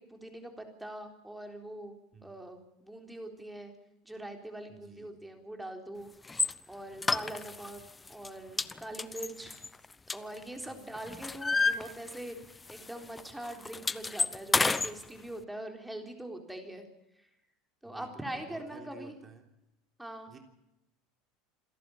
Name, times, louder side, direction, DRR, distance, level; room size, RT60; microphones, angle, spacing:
voice 1, 0.0-3.7 4.0-6.1 6.7-7.8 8.1-9.5 10.1-12.4 12.7-16.8 17.2-17.3 17.8-19.1 20.0-20.3, right 1 dB, 5° right, 4 dB, 3.8 m, -43 dB
voice 2, 4.7-5.2 7.2-7.5 10.7-10.8 17.8-19.5 20.3-20.4, right 3 dB, 25° right, 5 dB, 3.6 m, -53 dB
sound 1, 6.3-6.5 7.0-7.8 8.1-8.3 8.6-10.6 11.0-12.4 12.7-12.9 13.2-14.9, left 4 dB, 15° left, 0.7 m, -30 dB
27.5 x 11.0 x 8.6 m, 0.91 s
supercardioid pair, 120°, 0 cm